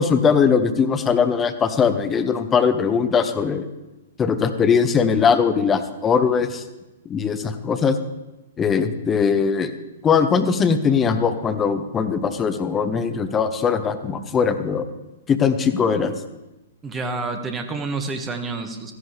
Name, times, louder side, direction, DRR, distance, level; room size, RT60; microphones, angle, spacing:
voice 1, 0.0-3.7 4.2-6.6 7.0-8.0 8.6-9.7 10.0-14.8 15.3-16.1, left 6 dB, 20° left, 9 dB, 1.0 m, -20 dB
voice 2, 16.8-18.9, right 3 dB, 15° right, 6 dB, 1.5 m, -28 dB
16.0 x 14.0 x 3.4 m, 1.0 s
figure-of-eight pair, 110°, 0 cm